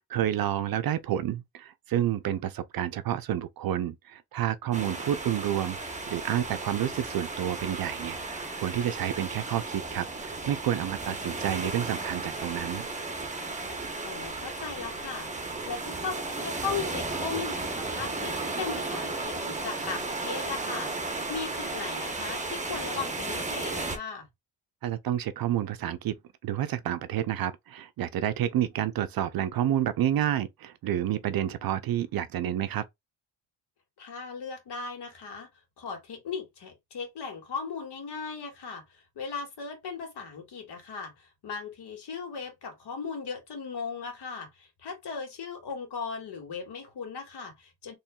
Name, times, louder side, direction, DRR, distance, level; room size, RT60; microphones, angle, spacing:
voice 1, 0.0-5.8 6.1-12.9 24.8-26.2 26.4-32.8, right 11 dB, 50° right, 0.5 m, -29 dB
sound 1, 4.7-24.0, right 3 dB, 15° right, 1.0 m, -34 dB
voice 2, 4.8-5.1 11.1-11.3 14.0-24.3 34.0-35.5 35.8-47.9, left 5 dB, 60° left, 2.0 m, -38 dB
4.3 x 3.1 x 2.3 m
cardioid pair, 95°, 45 cm